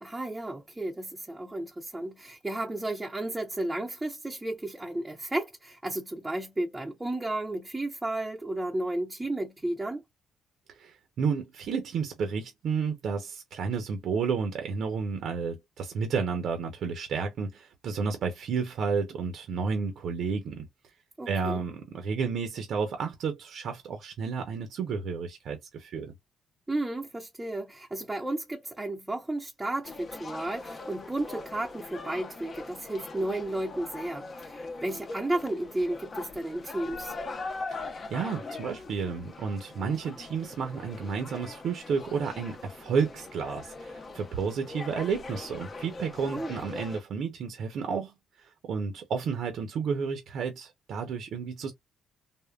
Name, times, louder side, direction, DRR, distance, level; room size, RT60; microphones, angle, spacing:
voice 1, 0.0-10.0 21.2-21.6 26.7-37.1 46.3-46.5, right 1 dB, 10° right, 0.6 m, -33 dB
voice 2, 10.7-20.7 21.3-26.1 37.7-37.8 38.1-51.7, right 5 dB, 70° right, 0.7 m, -31 dB
sound 1, 29.8-47.0, left 3 dB, 40° left, 0.7 m, -41 dB
3.6 x 2.1 x 2.3 m
cardioid pair, 90°, 0 cm